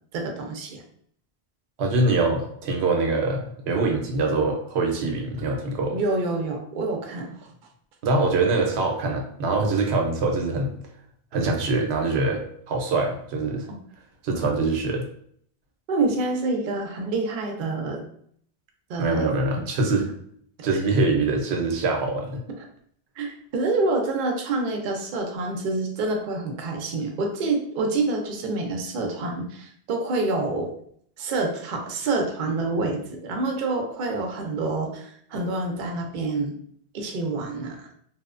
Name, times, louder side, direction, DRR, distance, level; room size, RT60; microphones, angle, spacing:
voice 1, 0.1-0.8 5.9-7.5 13.7-13.8 15.9-18.0 18.9-19.6 20.7-20.8 23.2-30.7 31.2-36.6 36.9-37.9, right 3 dB, 60° right, 2 dB, 0.6 m, -27 dB
voice 2, 1.8-6.0 8.0-10.8 11.3-13.7 14.2-15.1 19.0-20.1 20.6-22.4, right 3 dB, 90° right, 2 dB, 0.8 m, -24 dB
2.9 x 2.0 x 2.4 m, 0.64 s
omnidirectional pair, 1.1 m